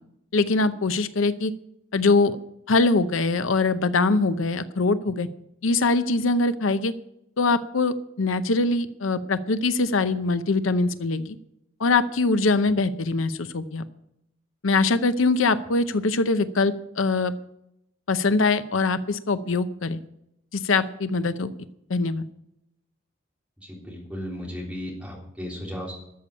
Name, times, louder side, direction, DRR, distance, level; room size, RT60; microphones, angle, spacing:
voice 1, 0.3-1.5 1.9-2.4 2.7-5.3 5.6-6.9 7.4-11.4 11.8-13.8 14.6-17.3 18.1-20.0 20.5-21.5 21.9-22.3, left 3 dB, 85° left, 12 dB, 0.7 m, -23 dB
voice 2, 23.6-25.9, equal, 5° right, -3 dB, 3.5 m, -35 dB
13.5 x 7.0 x 8.3 m, 0.80 s
head